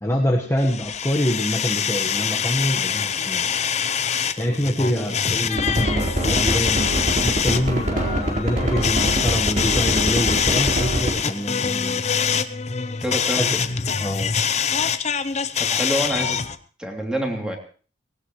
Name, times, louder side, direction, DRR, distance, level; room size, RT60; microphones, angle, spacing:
voice 1, 0.0-3.5 4.4-6.9 7.2-12.0 13.4-13.5 14.0-14.3, equal, 15° left, -1 dB, 1.3 m, -25 dB
sound 1, 0.6-16.6, left 7 dB, 35° left, 0.7 m, -24 dB
voice 2, 4.8-5.1 13.0-13.6 15.6-16.4 16.8-17.6, equal, 5° right, 1 dB, 3.0 m, -27 dB
sound 2, 5.6-11.1, right 1 dB, 40° right, 4.1 m, -23 dB
19.0 x 18.0 x 3.2 m, 0.39 s
head